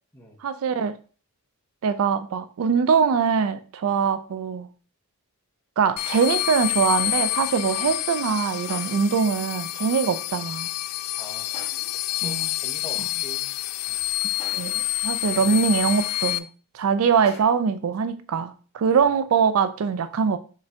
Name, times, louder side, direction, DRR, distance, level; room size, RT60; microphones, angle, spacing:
voice 1, 0.4-1.0 1.8-4.7 5.8-10.7 12.2-12.5 13.0-13.1 14.5-16.5 16.7-20.4, right 6 dB, 65° right, 0.3 m, -23 dB
sound 1, 6.0-16.4, left 17 dB, 80° left, 0.3 m, -28 dB
sound 2, 8.7-9.3 11.5-12.1 14.4-15.0 17.3-17.8, left 1 dB, 30° left, 1.9 m, -44 dB
voice 2, 11.1-11.6 12.1-13.5 13.9-14.0 15.4-15.6 18.8-19.0, equal, 10° left, 0.8 m, -43 dB
5.1 x 2.6 x 3.3 m
head